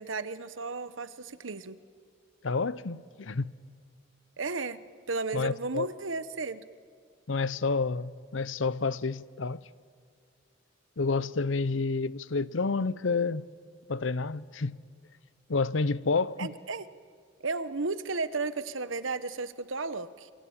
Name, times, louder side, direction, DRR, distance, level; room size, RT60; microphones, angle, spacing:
voice 1, 0.0-1.8 4.4-4.8 5.1-6.6 16.4-16.9 17.4-20.3, right 3 dB, 80° right, 1.1 m, -34 dB
voice 2, 2.4-3.6 5.3-5.9 7.3-9.6 11.0-13.5 13.9-14.8 15.5-16.5, left 4 dB, 75° left, 0.7 m, -29 dB
27.0 x 24.0 x 8.8 m
head